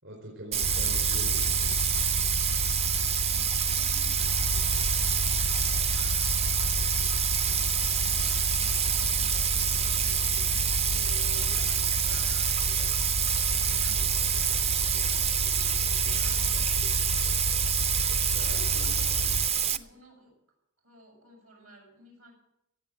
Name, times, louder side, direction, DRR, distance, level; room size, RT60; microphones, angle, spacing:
voice 1, 0.0-1.5 18.3-18.9, equal, 60° right, -1 dB, 4.5 m, -43 dB
Bathtub (filling or washing), 0.5-19.8, right 8 dB, 30° right, 0.5 m, -27 dB
sound 1, 0.6-19.5, left 3 dB, 60° left, 0.5 m, -33 dB
voice 2, 2.9-17.0 18.5-20.3 20.8-22.3, right 2 dB, 80° right, 0 dB, 7.5 m, -53 dB
17.0 x 8.1 x 9.1 m, 0.83 s
head